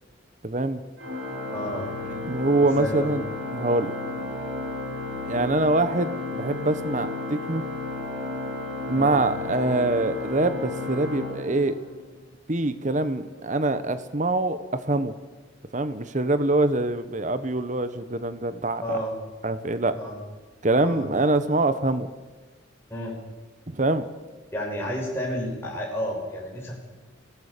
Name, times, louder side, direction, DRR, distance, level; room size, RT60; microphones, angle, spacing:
voice 1, 0.4-0.8 2.1-3.2 3.5-3.9 5.3-7.6 8.9-11.8 12.5-14.6 14.8-15.1 15.7-19.0 19.4-19.9 20.6-22.1 23.7-24.0, right 2 dB, 40° right, 12 dB, 1.1 m, -24 dB
Organ, 1.0-12.1, left 2 dB, 75° right, 6.3 m, -33 dB
voice 2, 1.5-1.9 2.6-3.1 8.9-9.2 18.8-19.1 19.9-20.2 20.8-21.0 22.9-23.1 24.5-26.8, equal, 10° left, -3 dB, 5.9 m, -31 dB
26.5 x 17.5 x 6.8 m, 1.3 s
head